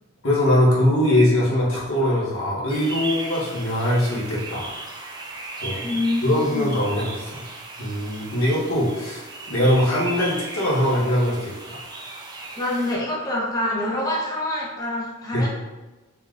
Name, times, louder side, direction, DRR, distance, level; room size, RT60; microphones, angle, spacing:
voice 1, 0.2-4.7 5.6-5.8 6.2-7.4 7.8-11.8 15.3-15.5, left 1 dB, 90° left, -6 dB, 1.4 m, -22 dB
sound 1, 2.7-12.9, right 2 dB, 20° right, 0.5 m, -36 dB
voice 2, 5.8-6.7 12.6-15.5, left 1 dB, 20° left, -5 dB, 0.7 m, -26 dB
4.2 x 3.8 x 2.5 m, 1.1 s
head